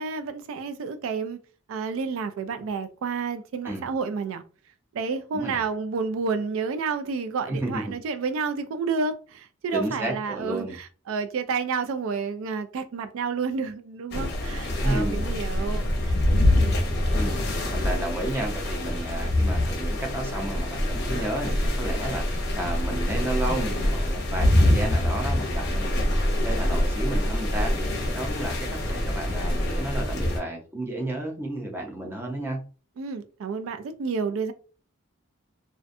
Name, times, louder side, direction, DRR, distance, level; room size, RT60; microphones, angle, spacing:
voice 1, 0.0-1.4 1.7-4.4 4.9-16.2 16.5-16.8 33.0-34.5, right 5 dB, 75° right, 0.3 m, -30 dB
voice 2, 7.5-7.9 9.7-10.8 14.8-15.3 17.1-17.4 17.7-26.1 26.4-32.6, right 1 dB, 10° right, 0.5 m, -32 dB
sound 1, 14.1-30.4, left 1 dB, 50° left, 0.6 m, -25 dB
2.5 x 2.1 x 2.5 m
head